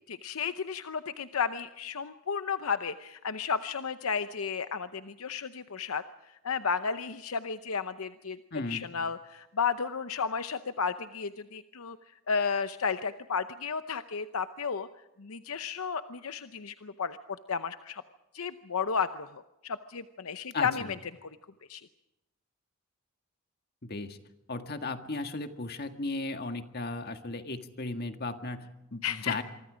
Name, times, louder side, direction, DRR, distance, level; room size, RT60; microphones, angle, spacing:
voice 1, 0.1-8.4 8.7-12.0 12.3-14.9 15.2-17.2 17.5-18.0 18.3-21.0 21.2-21.3 21.7-21.8 29.0-29.4, left 6 dB, 75° left, 11 dB, 0.8 m, -33 dB
voice 2, 8.5-8.9 20.5-20.9 23.8-24.2 24.5-29.4, left 2 dB, 45° left, 7 dB, 1.7 m, -36 dB
26.0 x 24.5 x 5.1 m, 0.95 s
head